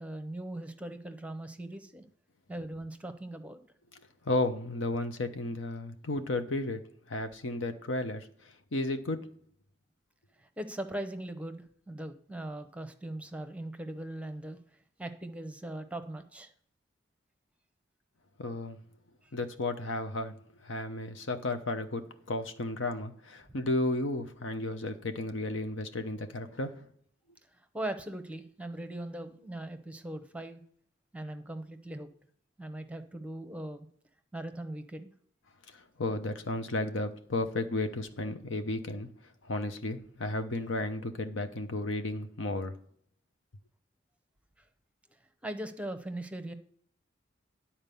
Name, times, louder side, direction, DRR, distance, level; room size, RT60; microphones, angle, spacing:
voice 1, 0.0-2.0 2.5-3.6 10.4-14.6 15.0-16.5 19.2-19.3 27.6-30.6 31.1-32.1 32.6-33.9 34.3-35.1 45.4-46.5, right 1 dB, 5° right, 0.7 m, -40 dB
voice 2, 4.2-6.8 7.1-8.3 8.7-9.3 18.4-18.8 19.3-26.9 35.7-39.1 39.4-42.7, left 2 dB, 85° left, 0.9 m, -33 dB
11.0 x 4.3 x 6.9 m
head